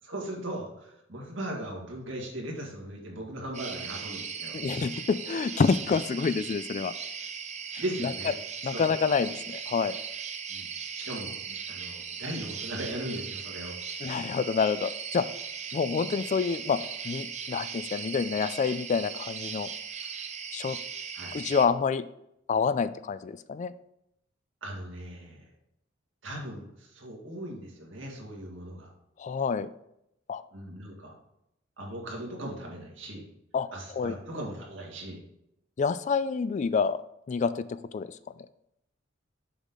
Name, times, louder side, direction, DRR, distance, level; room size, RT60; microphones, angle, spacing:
voice 1, 0.0-4.6 7.8-8.4 8.7-8.8 10.5-10.7 10.9-13.8 21.1-21.3 24.6-25.5 26.2-28.9 30.5-31.1 31.8-33.2 33.7-35.2, right 1 dB, 75° right, -1 dB, 2.0 m, -38 dB
sound 1, 3.5-21.7, right 6 dB, 35° right, 0.6 m, -38 dB
voice 2, 4.5-6.9 8.0-8.1 8.6-10.0 14.0-15.3 15.7-16.8 17.0-19.7 20.5-20.8 21.3-22.0 22.5-23.7 29.2-29.7 30.3-30.4 33.5-33.7 34.0-34.2 35.8-37.0 37.3-38.1, left 5 dB, 40° left, 14 dB, 0.3 m, -27 dB
7.0 x 5.6 x 3.7 m, 0.80 s
head